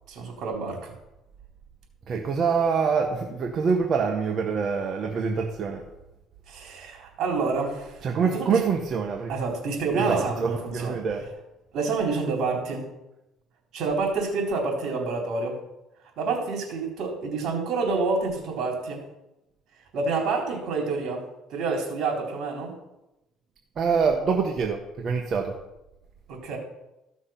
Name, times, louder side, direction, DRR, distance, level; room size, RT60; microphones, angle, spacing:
voice 1, 0.1-0.9 6.5-8.6 9.3-11.0 11.7-12.8 13.7-15.6 16.2-19.0 19.9-21.2 21.5-22.8 26.3-26.6, right 4 dB, 65° right, 1 dB, 4.0 m, -28 dB
voice 2, 2.1-5.8 8.0-9.3 9.9-11.3 23.8-25.6, right 5 dB, 45° right, 3 dB, 1.3 m, -25 dB
15.0 x 6.3 x 5.9 m, 0.94 s
cardioid pair, 100°, 0 cm